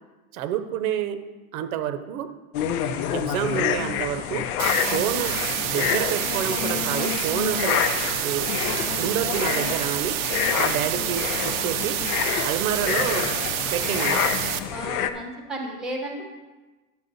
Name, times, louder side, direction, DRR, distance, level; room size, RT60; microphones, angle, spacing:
voice 1, 0.3-1.2 1.5-2.3 3.1-4.5 4.9-7.8 8.2-8.5 9.0-10.2 10.6-12.0 12.4-13.3 13.7-14.2, right 10 dB, 70° right, 10 dB, 0.8 m, -28 dB
sound 1, 2.5-15.1, left 9 dB, 80° left, 0.8 m, -27 dB
sound 2, 4.6-14.6, right 12 dB, 45° right, 0.5 m, -28 dB
voice 2, 14.7-16.3, right 1 dB, ahead, 1 dB, 0.8 m, -33 dB
10.5 x 7.2 x 4.0 m, 1.2 s
supercardioid pair, 175°, 43 cm